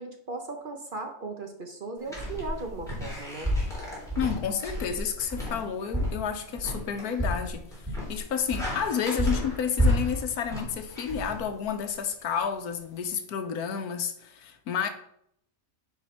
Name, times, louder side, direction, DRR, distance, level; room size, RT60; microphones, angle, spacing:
voice 1, 0.0-3.5, right 3 dB, 40° right, 0.9 m, -37 dB
sound 1, 2.1-11.9, equal, ahead, 3.4 m, -31 dB
voice 2, 4.2-7.7 8.1-14.9, left 7 dB, 85° left, 1.4 m, -30 dB
9.8 x 4.3 x 4.3 m
omnidirectional pair, 1.6 m